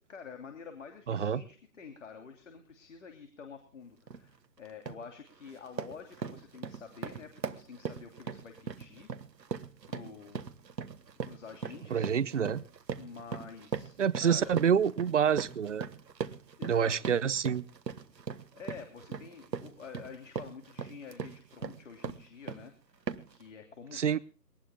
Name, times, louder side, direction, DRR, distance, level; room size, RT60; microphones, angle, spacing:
voice 1, 0.0-9.1 9.9-10.4 11.2-12.1 12.9-14.6 16.6-16.9 18.5-24.2, left 5 dB, 45° left, 5 dB, 3.1 m, -48 dB
voice 2, 1.1-1.4 11.9-12.6 14.0-15.9 16.7-17.6 23.9-24.2, right 7 dB, 45° right, 16 dB, 0.9 m, -27 dB
sound 1, 4.1-4.3 4.7-5.1 5.4-22.7 23.1-23.4, right 6 dB, 80° right, 1.6 m, -40 dB
23.0 x 19.0 x 2.3 m, 0.38 s
hypercardioid pair, 165°, 49 cm